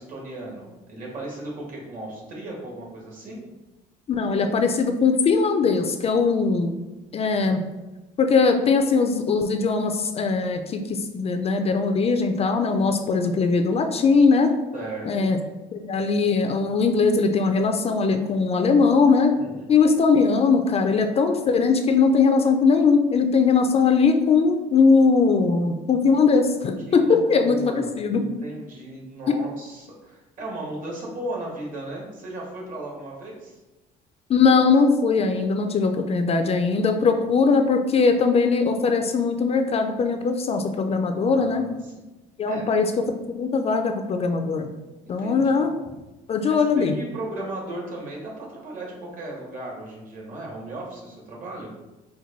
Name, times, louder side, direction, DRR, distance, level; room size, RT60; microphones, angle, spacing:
voice 1, 0.0-3.5 14.7-15.3 19.3-19.7 26.8-33.6 41.3-42.0 42.5-42.6 45.2-45.7 46.5-51.7, right 1 dB, 50° right, -2 dB, 1.5 m, -36 dB
voice 2, 4.1-6.7 7.1-7.6 8.2-14.5 15.0-15.4 15.7-19.3 19.7-28.2 34.3-41.6 42.4-44.7 45.1-45.7 46.3-46.9, left 4 dB, 35° left, 6 dB, 0.4 m, -20 dB
4.4 x 2.2 x 3.9 m, 1.1 s
cardioid pair, 110°, 17 cm